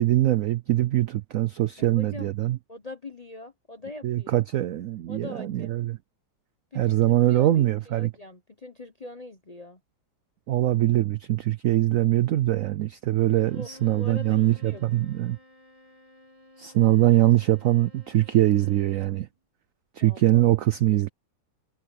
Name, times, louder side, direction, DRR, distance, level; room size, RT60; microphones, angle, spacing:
voice 1, 0.0-2.6 4.0-6.0 6.7-8.1 10.5-15.4 16.6-19.3 19.9-21.1, right 14 dB, 90° right, 0.7 m, -22 dB
voice 2, 1.8-2.3 2.7-4.4 5.1-5.8 6.7-9.8 13.5-13.7 14.0-14.8 20.0-20.5, left 2 dB, 40° left, 0.5 m, -42 dB
Bowed string instrument, 13.3-19.3, left 1 dB, 20° right, 2.6 m, -53 dB
omnidirectional pair, 2.0 m